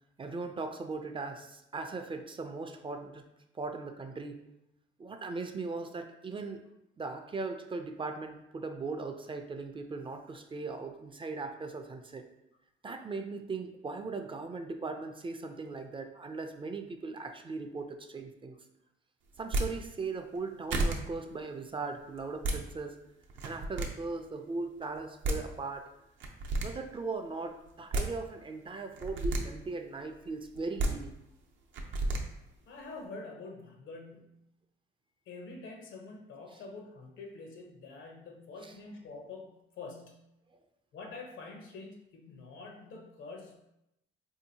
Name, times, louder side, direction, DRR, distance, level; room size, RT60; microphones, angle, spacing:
voice 1, 0.2-3.3 3.5-4.4 5.0-6.6 7.0-12.3 12.8-18.6 19.4-23.0 23.4-25.9 26.6-31.2 36.5-36.6 38.6-38.8 40.5-40.6, right 3 dB, 25° right, 5 dB, 0.4 m, -39 dB
sound 1, 19.4-19.7 20.3-20.4 20.7-21.0 22.2-22.6 23.3-23.9 24.9-25.0 25.2-25.4 26.2-26.7 27.7-28.1 28.9-29.4 30.5-30.9 31.7-32.2, right 2 dB, 70° right, 0.6 m, -30 dB
voice 2, 32.7-34.3 35.3-40.2 40.9-43.6, left 3 dB, 80° left, 1 dB, 0.8 m, -46 dB
4.0 x 2.7 x 2.7 m, 0.85 s
cardioid pair, 90°, 20 cm